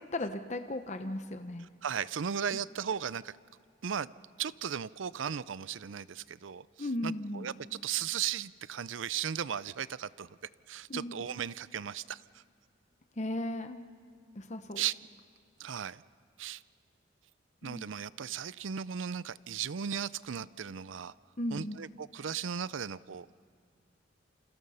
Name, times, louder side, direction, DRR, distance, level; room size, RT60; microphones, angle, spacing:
voice 1, 0.1-1.7 6.8-7.5 10.9-11.2 13.2-13.8 14.3-14.8 17.6-17.9 21.4-21.8, left 1 dB, 35° left, 8 dB, 0.9 m, -36 dB
voice 2, 1.8-3.3 3.8-4.1 4.4-10.3 10.7-12.4 14.8-14.9 15.6-16.0 16.4-16.6 17.6-21.1 21.5-23.3, right 8 dB, 80° right, 18 dB, 0.5 m, -36 dB
28.5 x 26.5 x 5.6 m, 2.3 s
head